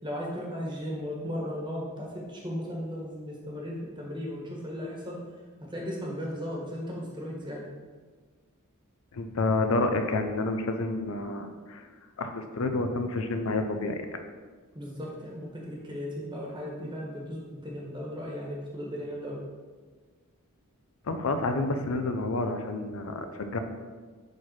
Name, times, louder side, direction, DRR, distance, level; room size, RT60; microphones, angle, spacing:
voice 1, 0.0-5.2 5.6-7.6 14.7-19.4, equal, 20° right, -3 dB, 1.4 m, -36 dB
voice 2, 9.1-11.9 12.2-14.1 21.0-23.6, left 2 dB, 70° left, 6 dB, 0.5 m, -29 dB
5.0 x 4.2 x 5.9 m, 1.5 s
head